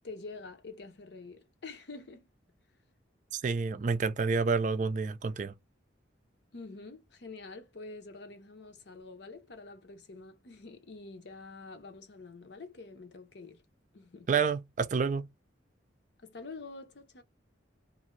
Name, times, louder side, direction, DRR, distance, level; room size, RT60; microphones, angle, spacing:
voice 1, 0.0-2.3 6.5-13.6 13.9-14.3 16.2-17.2, left 3 dB, 65° left, 0.7 m, -47 dB
voice 2, 3.3-5.5 14.3-15.2, right 5 dB, 40° right, 0.3 m, -29 dB
2.6 x 2.6 x 3.0 m
head